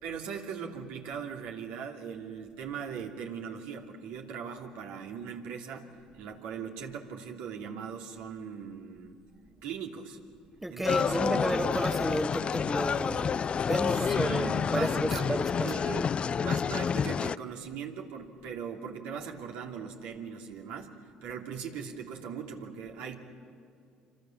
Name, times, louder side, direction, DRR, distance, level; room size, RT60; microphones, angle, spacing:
voice 1, 0.0-9.1 9.6-10.2 10.7-11.5 14.1-16.1 16.4-20.9 21.2-23.2, right 7 dB, 75° right, 2.9 m, -39 dB
voice 2, 10.6-15.8, right 1 dB, 10° right, 1.6 m, -32 dB
sound 1, 10.8-17.4, left 6 dB, 40° left, 0.5 m, -29 dB
27.0 x 26.0 x 7.3 m
hypercardioid pair, 70°, 3 cm